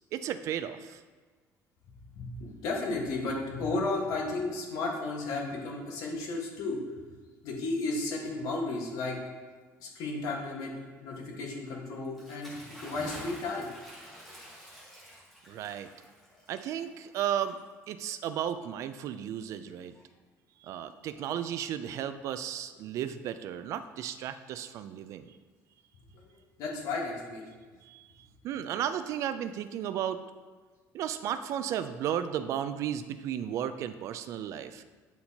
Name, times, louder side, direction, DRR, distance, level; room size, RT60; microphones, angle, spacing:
voice 1, 0.1-1.0 15.5-15.9 16.5-17.6 17.9-19.9 20.6-25.3 27.8-30.2 30.9-34.8, right 10 dB, 55° right, 11 dB, 0.3 m, -34 dB
voice 2, 2.1-6.8 7.4-9.2 9.8-10.7 11.0-13.7 26.1-26.3 26.6-27.4, left 3 dB, 65° left, -1 dB, 1.4 m, -33 dB
Bathtub (filling or washing) / Splash splatter, 12.0-18.0, equal, ahead, 1.4 m, -48 dB
9.3 x 4.3 x 2.8 m, 1.4 s
cardioid pair, 165°, 6 cm